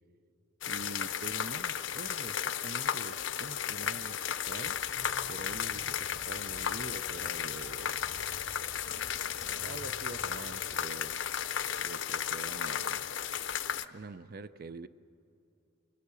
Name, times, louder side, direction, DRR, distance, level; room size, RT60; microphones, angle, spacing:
sound 1, 0.6-13.8, left 9 dB, 80° left, 0.7 m, -34 dB
voice 1, 0.7-4.8 5.3-8.0 8.8-11.2 11.8-13.0 13.9-14.9, right 3 dB, 55° right, 13 dB, 0.6 m, -45 dB
sound 2, 4.4-10.6, left 1 dB, 20° left, 5.2 m, -52 dB
28.5 x 22.5 x 6.9 m, 2.7 s
head